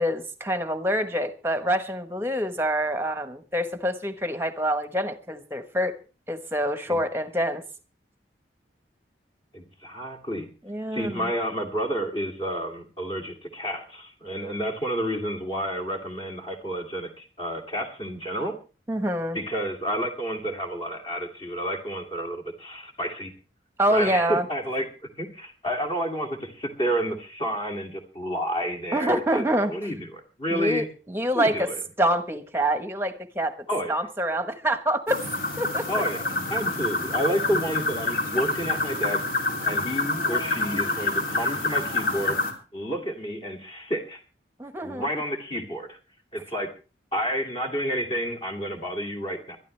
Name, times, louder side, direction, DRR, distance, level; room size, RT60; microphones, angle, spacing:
voice 1, 0.0-6.0 6.3-7.6 10.6-11.3 18.9-19.4 23.8-24.5 28.9-29.7 30.5-31.7 32.0-33.5 33.9-35.2 35.6-35.9 44.6-45.1, right 1 dB, 15° right, 9 dB, 1.2 m, -26 dB
voice 2, 9.5-10.5 10.9-18.5 19.3-23.3 23.9-24.9 25.2-30.9 31.3-31.8 33.7-33.9 35.9-36.2 36.5-42.4 42.7-44.2 44.8-46.0 46.3-46.7 47.1-49.6, equal, 30° left, 3 dB, 2.5 m, -30 dB
sound 1, 35.1-42.5, left 2 dB, 50° left, 2.9 m, -27 dB
22.5 x 12.5 x 3.3 m, 0.34 s
head